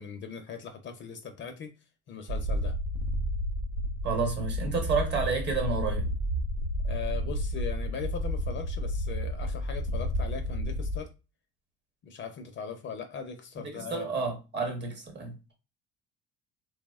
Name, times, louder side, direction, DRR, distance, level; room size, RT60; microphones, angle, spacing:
voice 1, 0.0-1.7 2.1-2.8 6.8-11.1 12.0-14.1, left 6 dB, 40° left, 0.4 m, -39 dB
sound 1, 2.3-11.0, equal, 70° right, 0.5 m, -31 dB
voice 2, 4.0-6.0 13.6-15.3, right 4 dB, 35° right, 0.9 m, -30 dB
3.0 x 2.0 x 2.2 m
cardioid pair, 110°, 30 cm